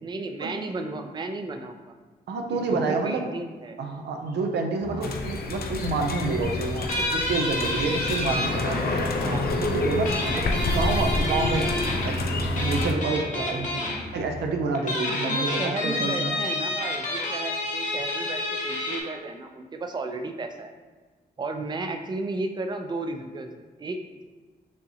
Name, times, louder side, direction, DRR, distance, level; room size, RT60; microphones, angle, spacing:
voice 1, 0.0-2.0 2.7-3.8 4.9-5.1 8.5-8.8 9.2-9.5 10.2-10.4 15.1-20.7 21.4-24.2, right 2 dB, 25° right, 5 dB, 0.4 m, -34 dB
voice 2, 2.3-3.3 3.8-9.1 9.6-13.9 14.1-16.4, right 3 dB, 80° right, 3 dB, 0.5 m, -29 dB
sound 1, 4.8-14.5, left 1 dB, 25° left, 0.7 m, -41 dB
sound 2, 5.0-12.9, left 2 dB, 65° left, 0.5 m, -28 dB
sound 3, 6.9-8.5 10.0-12.1 12.6-14.0 14.7-19.0, left 2 dB, 50° left, 1.1 m, -29 dB
6.2 x 2.8 x 2.7 m, 1.3 s
cardioid pair, 65°, 17 cm